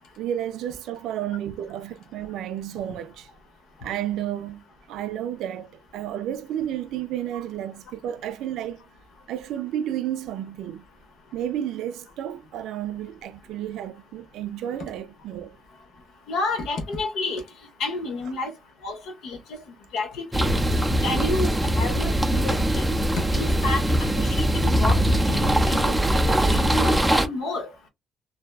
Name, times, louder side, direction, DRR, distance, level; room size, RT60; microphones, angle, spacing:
voice 1, 0.2-3.3 3.8-8.8 9.3-10.8 11.3-15.6, right 11 dB, 85° right, 0.3 m, -32 dB
voice 2, 16.3-17.4 17.8-18.5 18.8-19.6 19.9-20.5 21.0-27.7, left 3 dB, 80° left, 0.8 m, -31 dB
sound 1, 20.3-27.3, right 1 dB, 5° right, 0.5 m, -21 dB
2.6 x 2.2 x 2.2 m
cardioid pair, 90°, 0 cm